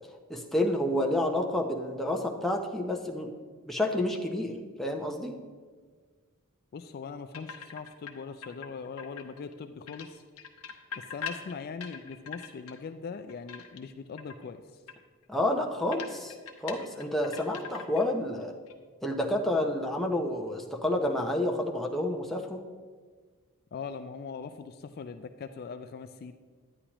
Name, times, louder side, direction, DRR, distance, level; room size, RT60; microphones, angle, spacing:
voice 1, 0.3-3.3 3.6-5.4 15.3-16.3 16.6-18.5 19.0-22.6, left 1 dB, ahead, 0 dB, 0.6 m, -29 dB
voice 2, 6.7-10.2 11.0-14.8 23.7-26.3, left 5 dB, 45° left, 8 dB, 0.3 m, -41 dB
sound 1, 7.3-8.1 8.4-9.5 9.9-12.8 13.1-13.9 14.2-14.4 14.9-15.0 15.2-15.3 15.9-18.1 18.4-18.7, left 6 dB, 70° left, 0.9 m, -42 dB
9.9 x 9.8 x 3.0 m, 1.5 s
head